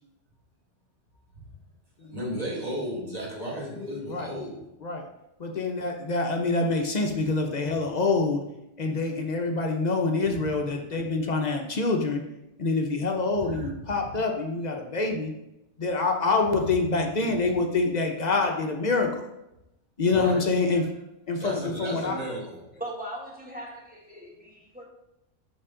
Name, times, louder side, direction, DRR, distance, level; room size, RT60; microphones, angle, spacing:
voice 1, 2.1-4.6 13.4-13.7 14.0-14.1 20.1-20.5 21.4-22.6, equal, 30° right, 1.7 m, -34 dB
voice 2, 5.4-8.4 8.8-12.2 12.6-15.3 15.8-19.2 20.0-20.8 21.3-22.2, left 3 dB, 50° left, 0.5 m, -26 dB
voice 3, 22.8-24.8, right 1 dB, 5° right, 1.1 m, -39 dB
5.8 x 4.6 x 3.7 m
omnidirectional pair, 1.4 m